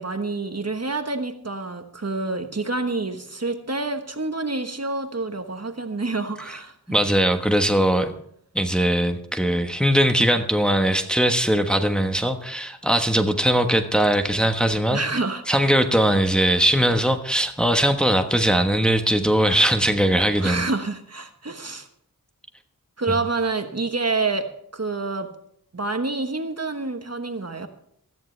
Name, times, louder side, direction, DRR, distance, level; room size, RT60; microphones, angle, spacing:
voice 1, 0.0-7.0 14.9-15.6 20.4-21.9 23.0-24.5 24.7-25.3 25.7-27.7, right 3 dB, 45° right, 7 dB, 1.3 m, -27 dB
voice 2, 6.9-8.1 8.5-15.0 15.5-20.6, right 1 dB, ahead, 5 dB, 1.3 m, -20 dB
17.0 x 13.5 x 3.3 m, 0.69 s
wide cardioid pair, 60°, 36 cm